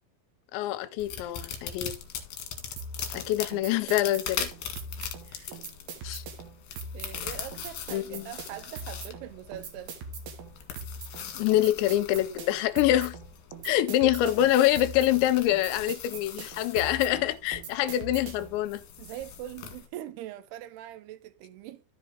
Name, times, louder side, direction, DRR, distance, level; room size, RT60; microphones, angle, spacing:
voice 1, 0.5-1.9 3.1-4.5 6.0-6.2 7.9-8.3 11.3-13.2 13.6-18.8, left 13 dB, 80° left, 2.9 m, -25 dB
sound 1, 1.0-19.9, left 8 dB, 60° left, 3.0 m, -41 dB
sound 2, 2.8-18.6, right 3 dB, 65° right, 3.2 m, -42 dB
voice 2, 5.2-5.6 6.1-6.2 6.9-10.0 13.7-14.1 19.0-21.8, right 12 dB, 80° right, 2.4 m, -42 dB
13.5 x 4.9 x 3.7 m
omnidirectional pair, 5.4 m